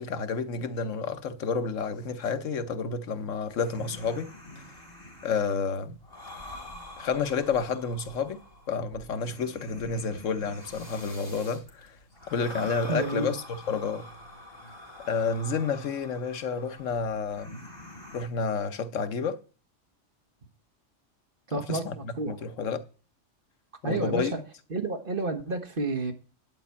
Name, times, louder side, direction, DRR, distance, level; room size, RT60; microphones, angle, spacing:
voice 1, 0.0-4.3 5.2-6.0 7.0-8.4 8.7-12.0 12.3-14.0 15.1-17.6 18.1-19.4 21.5-22.8 23.8-24.3, left 5 dB, 90° left, 1.3 m, -30 dB
sound 1, 3.4-18.2, left 1 dB, 50° left, 3.7 m, -46 dB
voice 2, 12.9-13.3 21.5-22.4 23.8-24.4 24.7-26.1, right 3 dB, 45° right, 1.6 m, -30 dB
11.5 x 5.1 x 8.4 m
omnidirectional pair, 1.3 m